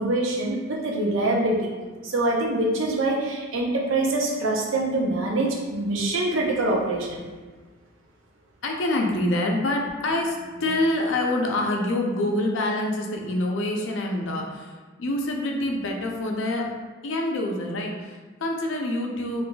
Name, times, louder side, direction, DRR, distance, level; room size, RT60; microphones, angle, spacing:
voice 1, 0.0-1.7 2.0-7.2, right 2 dB, 80° right, -1 dB, 0.6 m, -24 dB
voice 2, 8.6-14.7 15.0-16.7 17.0-19.4, left 1 dB, 70° left, 1 dB, 0.5 m, -26 dB
3.9 x 2.5 x 2.2 m, 1.4 s
head